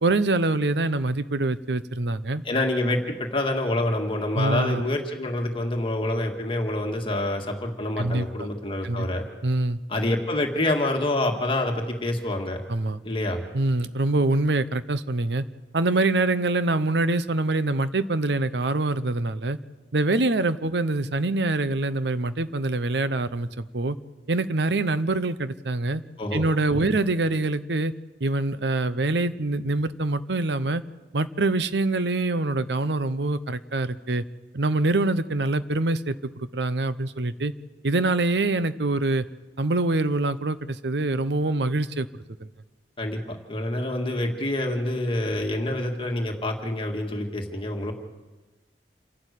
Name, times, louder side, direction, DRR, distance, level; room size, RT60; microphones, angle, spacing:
voice 1, 0.0-2.4 4.4-4.8 8.0-8.5 8.8-9.1 9.4-9.8 12.7-13.0 13.5-15.4 15.7-19.6 19.9-24.0 24.3-26.0 26.3-27.9 28.2-30.8 31.1-34.2 34.5-37.5 37.8-39.2 39.6-42.1, right 2 dB, 75° right, 13 dB, 0.8 m, -25 dB
voice 2, 2.4-9.2 9.9-12.6 13.0-13.4 26.2-26.4 26.7-26.9 43.0-47.9, left 1 dB, 30° left, 3 dB, 1.8 m, -27 dB
28.0 x 12.0 x 8.3 m, 1.2 s
head